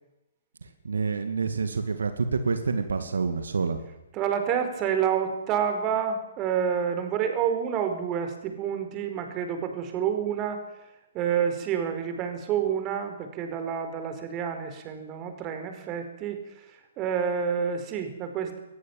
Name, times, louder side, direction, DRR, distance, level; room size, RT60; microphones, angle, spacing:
voice 1, 0.6-3.8, right 4 dB, 70° right, 8 dB, 2.4 m, -28 dB
voice 2, 4.1-10.6 11.1-18.6, right 8 dB, 25° right, 7 dB, 4.8 m, -28 dB
22.5 x 20.0 x 7.5 m, 0.93 s
figure-of-eight pair, 125°, 0 cm